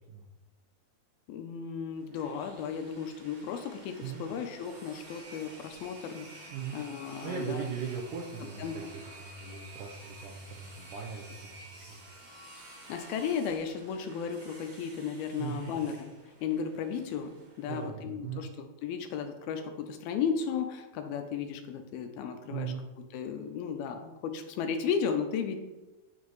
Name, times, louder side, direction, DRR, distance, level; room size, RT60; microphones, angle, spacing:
voice 1, 1.3-7.6 8.6-8.9 12.9-16.1 16.4-18.5 18.8-22.7 23.1-25.6, left 6 dB, 80° left, 6 dB, 2.4 m, -34 dB
sound 1, 1.9-17.9, right 2 dB, 45° right, 4.6 m, -51 dB
voice 2, 6.5-6.8 7.2-8.8 9.2-12.0 15.4-15.7 17.7-18.5 22.5-22.8, right 6 dB, 75° right, -1 dB, 1.9 m, -38 dB
9.4 x 8.1 x 3.1 m, 1.1 s
omnidirectional pair, 4.6 m